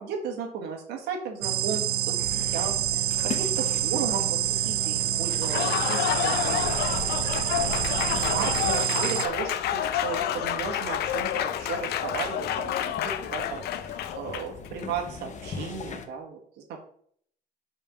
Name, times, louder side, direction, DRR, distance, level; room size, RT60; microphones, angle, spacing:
voice 1, 0.0-6.8 7.5-16.4, right 6 dB, 80° right, 2 dB, 1.7 m, -35 dB
sound 1, 1.4-9.3, right 13 dB, 65° right, 0.5 m, -27 dB
sound 2, 2.2-16.1, left 5 dB, 45° left, 0.9 m, -40 dB
Applause, 5.3-14.7, left 11 dB, 70° left, 0.6 m, -29 dB
5.5 x 4.5 x 5.8 m, 0.62 s
cardioid pair, 110°, 17 cm